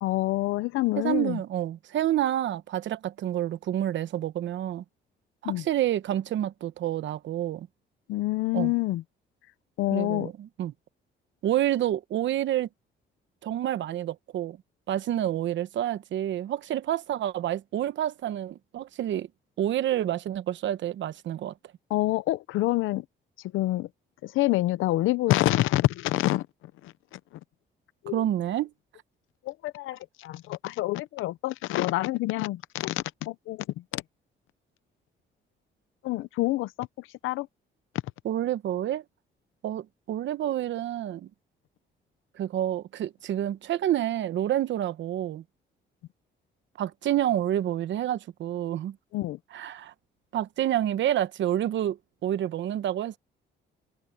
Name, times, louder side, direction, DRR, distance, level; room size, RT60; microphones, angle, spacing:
voice 1, 0.0-1.4 5.4-5.6 8.1-9.0 9.8-10.3 21.9-23.0 23.5-23.9 24.2-26.5 26.8-27.2 28.0-28.2 29.4-33.7 33.9-34.0 36.0-37.5 49.1-49.4, left 17 dB, 90° left, 0.7 m, -27 dB
voice 2, 1.0-4.8 5.4-7.7 8.5-8.7 9.9-10.7 11.4-12.7 13.4-14.6 14.9-19.3 19.6-21.5 28.1-28.7 38.2-39.0 39.6-41.3 42.4-45.4 46.8-49.0 49.5-49.9 50.3-52.0 52.2-53.2, right 12 dB, 70° right, 1.0 m, -28 dB
cardioid pair, 90°, 20 cm